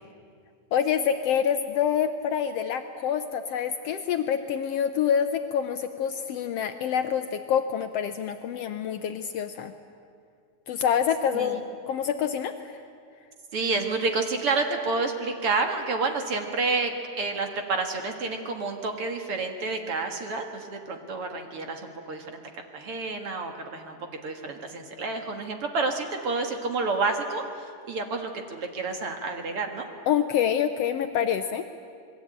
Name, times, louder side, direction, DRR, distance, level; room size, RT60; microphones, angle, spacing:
voice 1, 0.7-9.7 10.7-12.7 30.1-31.7, left 8 dB, 90° left, 8 dB, 1.3 m, -26 dB
voice 2, 13.5-22.4 22.7-24.0 24.2-29.9, right 3 dB, 50° right, 4 dB, 2.2 m, -29 dB
26.5 x 21.0 x 8.9 m, 2.3 s
omnidirectional pair, 3.9 m